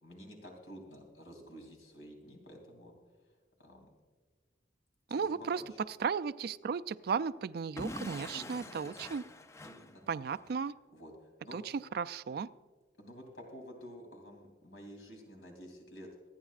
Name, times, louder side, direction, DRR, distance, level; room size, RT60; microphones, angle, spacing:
voice 1, 0.0-2.9 3.6-3.9 5.1-5.2 5.6-5.8 8.3-8.9 9.6-10.0 10.9-11.6 13.0-16.1, equal, 85° left, 1 dB, 3.0 m, -51 dB
voice 2, 5.1-5.6 5.9-9.2 10.1-10.7 11.5-12.5, right 6 dB, 55° right, 15 dB, 0.3 m, -35 dB
Explosion / Shatter, 7.8-10.5, left 2 dB, 15° left, 0.4 m, -45 dB
26.0 x 9.3 x 2.4 m, 1.4 s
head